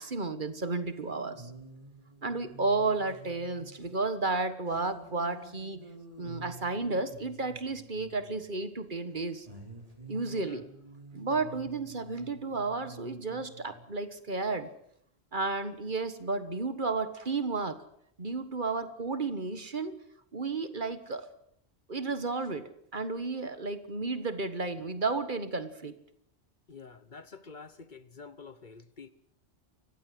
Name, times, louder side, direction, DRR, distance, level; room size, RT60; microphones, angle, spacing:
voice 1, 0.0-1.5 2.2-5.8 6.2-9.5 10.1-10.6 11.1-14.7 15.3-17.8 18.2-19.9 20.3-21.3 21.9-25.9, right 3 dB, 50° right, 1.6 m, -32 dB
sound 1, 0.9-3.9 4.7-8.6 9.4-13.9 16.0-16.1, right 3 dB, 35° right, 4.6 m, -50 dB
voice 2, 10.3-10.7 26.7-29.1, left 5 dB, 50° left, 1.2 m, -48 dB
29.0 x 15.0 x 7.8 m
omnidirectional pair, 1.1 m